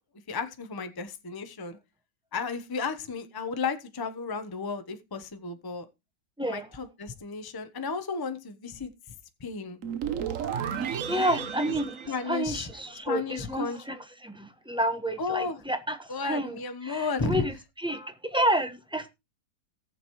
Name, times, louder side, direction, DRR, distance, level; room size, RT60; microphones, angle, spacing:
voice 1, 0.3-1.8 2.3-5.9 6.5-8.9 9.4-9.8 12.1-12.7 13.1-13.8 15.2-15.6 16.1-17.5, left 4 dB, 20° left, 0.7 m, -33 dB
sound 1, 9.8-13.1, right 8 dB, 55° right, 1.2 m, -33 dB
voice 2, 10.8-16.6 16.8-19.1, right 1 dB, 5° right, 0.9 m, -30 dB
18.0 x 7.3 x 3.1 m
omnidirectional pair, 1.8 m